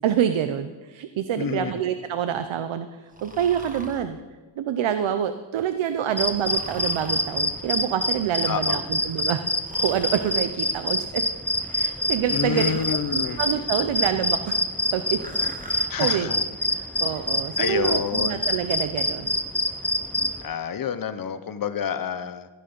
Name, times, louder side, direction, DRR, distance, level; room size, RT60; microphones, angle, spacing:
voice 1, 0.0-4.2 4.6-9.5 9.8-11.2 11.6-12.8 13.1-14.6 14.9-15.2 15.6-16.3 16.7-19.4, right 9 dB, 75° right, 10 dB, 0.7 m, -27 dB
voice 2, 1.4-1.8 8.5-8.8 12.3-13.4 15.9-16.4 17.6-18.5 20.4-22.5, left 7 dB, 45° left, 12 dB, 0.7 m, -28 dB
Breathing, 3.1-4.0 6.4-7.3 9.6-10.4 12.5-13.0 15.2-15.9, right 2 dB, 15° right, 1.1 m, -42 dB
sound 1, 6.2-20.4, left 1 dB, 5° left, 0.5 m, -26 dB
15.0 x 9.1 x 5.3 m, 1.3 s
wide cardioid pair, 180°, 48 cm